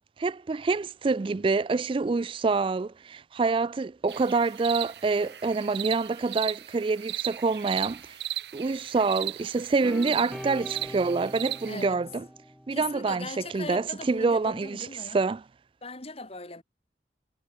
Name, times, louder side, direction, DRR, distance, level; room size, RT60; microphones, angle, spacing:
voice 1, 0.2-8.2 8.5-12.2 12.7-13.3 13.5-14.9 15.1-15.4, right 4 dB, 30° right, 0.3 m, -26 dB
sound 1, 4.1-11.9, right 14 dB, 70° right, 3.7 m, -36 dB
sound 2, 9.8-13.3, equal, ahead, 1.3 m, -42 dB
voice 2, 11.7-12.0 12.7-15.2 15.8-16.6, left 3 dB, 35° left, 4.8 m, -39 dB
head